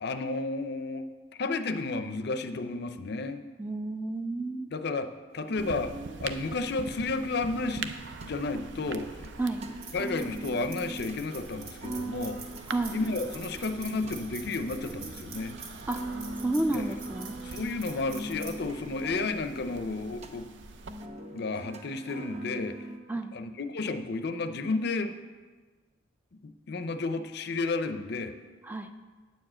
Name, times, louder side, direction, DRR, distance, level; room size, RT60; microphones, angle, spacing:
voice 1, 0.0-1.1 1.4-3.4 4.7-5.9 6.2-8.0 8.2-9.2 9.9-12.4 12.9-15.6 16.7-16.9 17.4-20.5 21.3-22.8 23.3-25.1 26.4-28.3, left 3 dB, 60° left, 10 dB, 0.5 m, -32 dB
voice 2, 3.6-4.7 9.4-9.6 12.7-13.0 15.9-16.0 16.4-17.4 23.1-23.3 28.6-28.9, right 2 dB, 10° right, 7 dB, 0.4 m, -31 dB
sound 1, 5.4-23.0, right 2 dB, 35° right, 0.8 m, -42 dB
sound 2, 5.6-21.1, right 4 dB, 70° right, 0.5 m, -44 dB
sound 3, 9.4-19.7, right 5 dB, 55° right, 1.5 m, -47 dB
9.2 x 4.9 x 7.5 m, 1.4 s
head